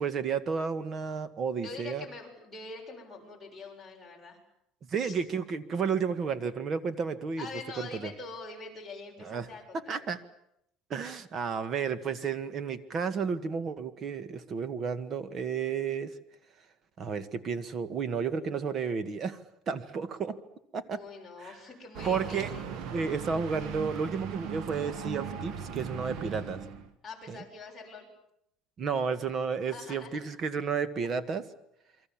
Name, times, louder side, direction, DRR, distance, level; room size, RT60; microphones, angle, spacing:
voice 1, 0.0-2.0 4.9-7.5 7.8-8.1 9.2-9.5 9.9-10.2 10.9-16.1 17.0-19.4 19.7-20.4 20.7-21.0 21.4-21.5 22.0-22.5 22.9-26.6 27.3-27.4 28.8-31.5, right 6 dB, 35° right, 13 dB, 1.6 m, -32 dB
voice 2, 1.6-4.4 5.0-5.2 7.4-10.2 20.9-22.7 27.0-28.1 29.7-30.2, left 3 dB, 10° left, -2 dB, 7.2 m, -44 dB
sound 1, 21.9-26.9, right 7 dB, 55° right, 1.9 m, -38 dB
28.5 x 23.5 x 7.4 m, 0.78 s
cardioid pair, 150°, 0 cm